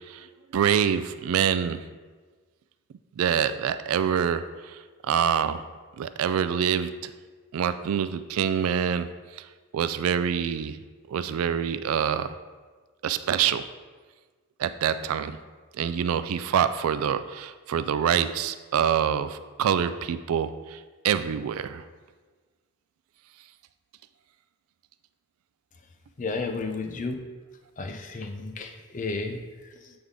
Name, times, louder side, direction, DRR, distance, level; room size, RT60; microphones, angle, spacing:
voice 1, 0.5-1.8 3.2-4.8 5.0-5.6 6.0-7.1 7.5-9.1 9.4-9.5 9.7-10.8 11.1-12.3 13.0-13.7 14.6-15.4 15.7-20.8 21.0-21.8, right 8 dB, 85° right, 12 dB, 0.3 m, -26 dB
voice 2, 26.2-27.1 27.8-29.9, left 3 dB, 35° left, 5 dB, 0.5 m, -33 dB
8.0 x 3.5 x 3.7 m, 1.4 s
head